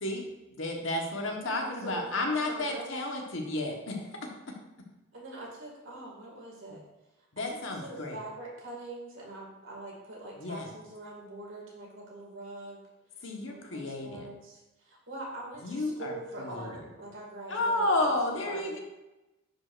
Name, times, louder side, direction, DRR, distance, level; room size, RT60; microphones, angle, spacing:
voice 1, 0.5-4.1 7.3-8.2 10.4-10.7 13.2-14.3 15.6-16.1 16.4-16.7 17.5-18.8, left 2 dB, 65° left, 1 dB, 1.3 m, -31 dB
voice 2, 1.4-2.1 2.5-2.9 5.1-6.8 7.5-12.8 13.5-18.8, right 2 dB, 65° right, -3 dB, 2.2 m, -43 dB
10.5 x 5.1 x 2.5 m, 1.0 s
head